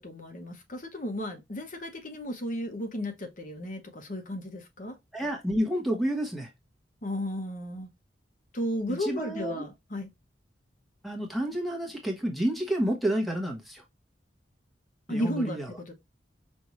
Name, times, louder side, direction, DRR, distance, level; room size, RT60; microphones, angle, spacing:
voice 1, 0.0-5.0 7.0-7.9 8.5-10.1 15.1-15.9, left 1 dB, 45° left, 1.1 m, -34 dB
voice 2, 5.1-6.5 8.9-9.7 11.0-13.8 15.1-15.7, right 1 dB, ahead, 1.0 m, -30 dB
5.4 x 2.6 x 3.0 m
head